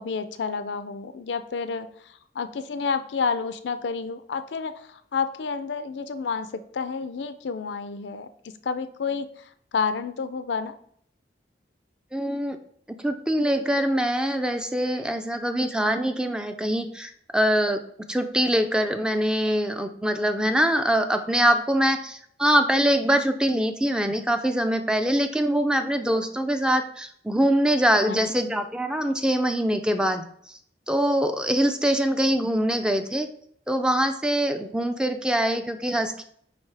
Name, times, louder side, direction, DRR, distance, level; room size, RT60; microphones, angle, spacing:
voice 1, 0.0-8.3 8.6-10.8 28.0-28.6, left 5 dB, 80° left, 11 dB, 0.4 m, -30 dB
voice 2, 12.1-12.6 12.9-17.8 18.1-30.3 30.9-33.3 33.7-36.2, right 1 dB, 5° right, 7 dB, 0.4 m, -23 dB
9.1 x 3.2 x 3.4 m, 0.64 s
head